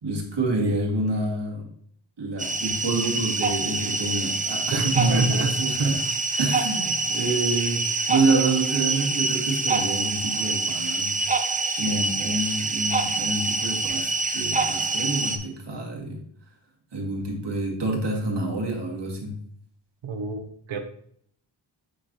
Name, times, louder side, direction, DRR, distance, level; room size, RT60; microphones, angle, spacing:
voice 1, 0.0-1.6 2.2-6.1 6.4-7.8 8.1-11.2 11.8-16.2 16.9-19.4, right 2 dB, 60° right, -1 dB, 2.3 m, -27 dB
sound 1, 2.4-15.4, right 3 dB, 15° right, 0.7 m, -26 dB
voice 2, 4.7-5.6 6.9-7.3 20.0-20.8, right 3 dB, 75° right, 5 dB, 1.0 m, -26 dB
9.4 x 4.0 x 3.0 m, 0.63 s
wide cardioid pair, 80°, 47 cm